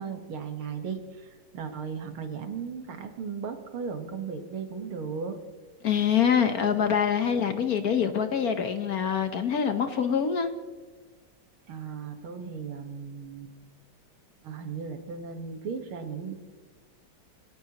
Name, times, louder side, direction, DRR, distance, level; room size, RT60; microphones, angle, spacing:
voice 1, 0.0-5.4 11.7-13.5 14.4-16.3, right 6 dB, 90° right, 6 dB, 2.3 m, -36 dB
voice 2, 5.8-10.5, left 7 dB, 55° left, 8 dB, 1.3 m, -25 dB
26.0 x 17.0 x 3.0 m, 1.4 s
omnidirectional pair, 2.3 m